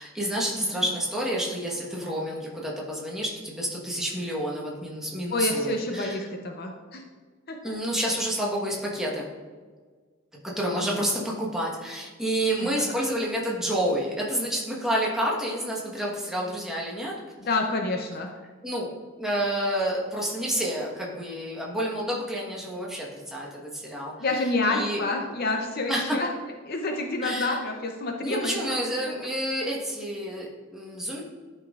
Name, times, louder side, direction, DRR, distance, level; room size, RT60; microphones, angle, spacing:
voice 1, 0.0-6.3 7.6-9.3 10.4-17.1 18.6-18.9 19.2-24.1 24.7-25.0 25.9-26.2 27.2-27.6 28.2-31.2, right 1 dB, ahead, -4 dB, 1.3 m, -29 dB
voice 2, 5.3-7.0 7.5-7.8 12.6-13.0 17.4-18.3 24.2-26.3 26.7-28.8, left 2 dB, 45° left, 3 dB, 0.6 m, -28 dB
12.0 x 5.3 x 2.5 m, 1.5 s
head